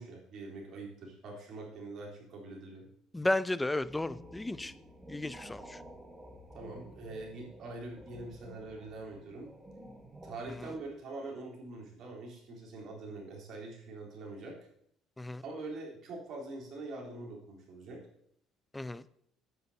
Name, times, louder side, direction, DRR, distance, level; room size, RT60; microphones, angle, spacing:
voice 1, 0.0-2.9 6.5-9.5 10.2-14.6 15.4-18.1, right 2 dB, 50° right, -2 dB, 3.7 m, -44 dB
voice 2, 3.1-4.7 5.1-5.8 15.2-15.4 18.7-19.0, left 2 dB, 10° left, 17 dB, 0.5 m, -33 dB
sound 1, 3.8-10.9, equal, 10° right, 1.8 m, -51 dB
9.5 x 8.0 x 4.2 m, 0.69 s
supercardioid pair, 95°, 0 cm